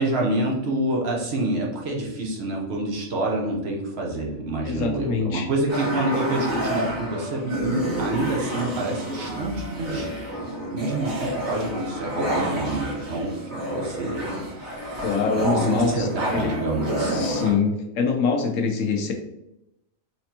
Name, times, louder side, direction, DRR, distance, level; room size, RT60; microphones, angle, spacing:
voice 1, 0.0-10.1 10.7-15.0 15.5-17.3, right 1 dB, 55° right, -2 dB, 1.1 m, -27 dB
voice 2, 4.6-5.5 15.0-16.5 17.0-19.1, left 5 dB, 70° left, 3 dB, 1.0 m, -24 dB
sound 1, 5.7-17.5, right 1 dB, 90° right, 1.8 m, -29 dB
4.2 x 3.3 x 2.8 m, 0.89 s
omnidirectional pair, 1.4 m